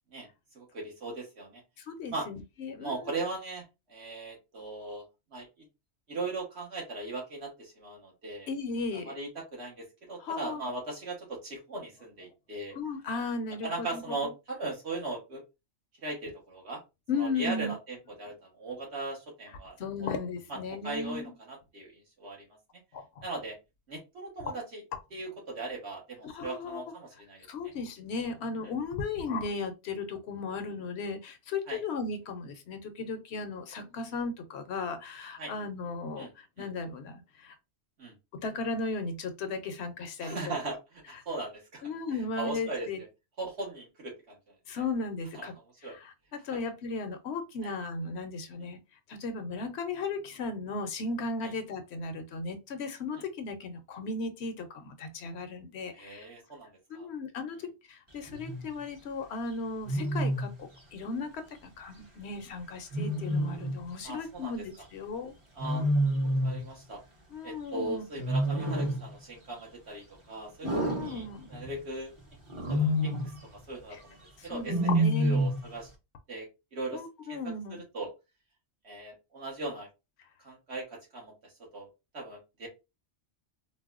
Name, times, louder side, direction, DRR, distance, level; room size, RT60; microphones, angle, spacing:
voice 1, 0.5-1.6 2.1-2.3 2.8-5.0 5.3-5.5 6.1-8.5 9.1-12.7 13.6-15.4 16.0-16.8 17.2-20.1 20.5-20.6 20.8-22.4 23.2-23.6 23.9-24.8 25.1-27.7 31.7-31.8 35.4-35.5 36.2-36.3 36.6-36.7 38.0-38.1 40.2-40.8 41.1-43.1 43.4-44.5 45.3-45.5 45.8-46.0 46.5-46.6 47.6-47.7 51.4-51.5 53.1-53.2 55.9-57.1 64.0-64.6 65.6-65.8 66.4-67.0 67.4-72.1 72.7-75.9 76.3-77.0 77.3-77.4 77.7-78.1 78.8-79.9 80.4-82.7, right 2 dB, 65° right, 1.5 m, -39 dB
voice 2, 1.8-3.1 8.5-9.2 10.2-10.6 12.7-14.3 17.1-17.7 19.8-21.3 22.9-23.2 26.2-26.8 27.5-37.6 38.4-40.5 41.1-41.2 41.8-43.0 44.7-45.6 45.8-48.8 49.1-56.3 56.9-65.3 67.3-68.0 70.6-71.5 73.9-74.0 74.4-75.5 76.9-77.8 80.2-80.3, left 4 dB, 70° left, 0.8 m, -36 dB
Wild animals, 58.3-58.6 59.9-60.6 62.9-63.8 65.6-66.7 68.2-69.1 70.6-71.8 72.5-73.4 74.7-75.7, equal, 30° right, 0.7 m, -28 dB
4.0 x 2.1 x 2.4 m
omnidirectional pair, 1.2 m